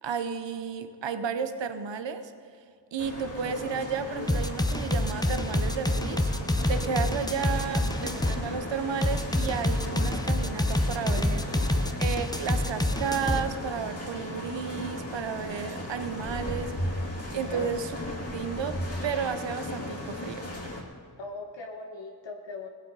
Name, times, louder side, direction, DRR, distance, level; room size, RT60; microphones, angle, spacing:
voice 1, 0.0-2.3 2.9-6.3 6.7-11.4 12.0-16.7 17.3-17.9 18.3-20.5, right 6 dB, 75° right, 11 dB, 0.9 m, -32 dB
sound 1, 3.0-20.8, left 1 dB, 30° left, 2.8 m, -36 dB
sound 2, 4.3-8.4 9.0-13.4, left 1 dB, 10° left, 0.9 m, -27 dB
voice 2, 11.2-11.9 17.5-17.7 18.1-18.2 21.2-22.7, left 3 dB, 75° left, 1 dB, 1.2 m, -40 dB
17.5 x 7.9 x 5.4 m, 2.2 s
cardioid pair, 40°, 45 cm